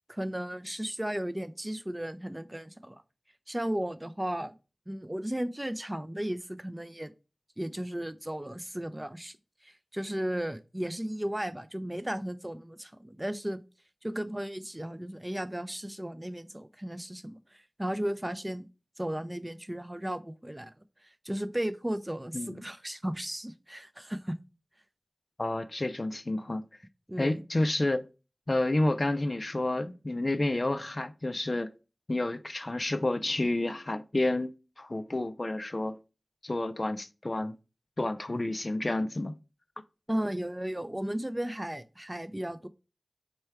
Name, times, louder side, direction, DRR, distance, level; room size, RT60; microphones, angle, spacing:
voice 1, 0.1-3.0 3.5-4.5 4.9-7.1 7.6-9.4 9.6-13.6 14.0-18.7 19.0-20.7 21.0-24.3 27.1-27.4 40.1-42.7, right 1 dB, 20° right, 0.4 m, -35 dB
voice 2, 25.4-26.6 27.2-28.0 28.5-31.7 32.1-36.0 36.4-37.6 38.0-39.3, left 2 dB, 45° left, 0.4 m, -30 dB
4.3 x 2.2 x 4.6 m
wide cardioid pair, 45°, 0 cm